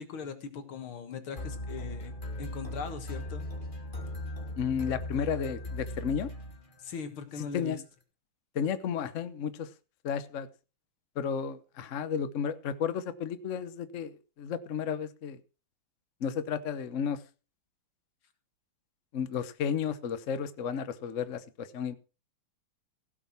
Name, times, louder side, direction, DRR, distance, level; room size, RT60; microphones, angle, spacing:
voice 1, 0.0-3.5 5.2-5.3 6.8-7.8, left 6 dB, 75° left, 2.4 m, -40 dB
sound 1, 1.4-7.0, left 1 dB, 25° left, 2.0 m, -38 dB
voice 2, 4.6-6.3 7.5-7.8 8.5-9.7 10.0-10.5 11.2-15.4 16.2-17.2 19.1-21.9, left 7 dB, 55° left, 0.9 m, -33 dB
16.5 x 6.2 x 5.9 m
omnidirectional pair, 2.4 m